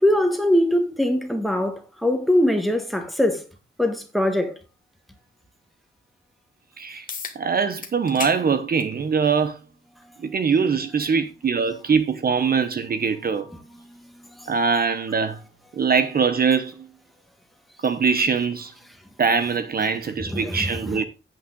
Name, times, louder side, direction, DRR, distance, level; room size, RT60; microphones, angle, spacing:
voice 1, 0.0-3.4 3.8-4.5 20.2-20.6, left 1 dB, ahead, 1.6 m, -21 dB
voice 2, 6.8-7.1 7.3-9.6 10.2-13.5 14.5-15.4 15.8-16.9 17.8-18.7 19.2-21.0, right 5 dB, 45° right, 0.9 m, -22 dB
sound 1, 7.1-7.4 7.8-8.4 8.8-8.9 10.0-10.1 15.0-15.1, left 5 dB, 40° left, 1.5 m, -33 dB
8.8 x 8.6 x 3.8 m
wide cardioid pair, 165°, 21 cm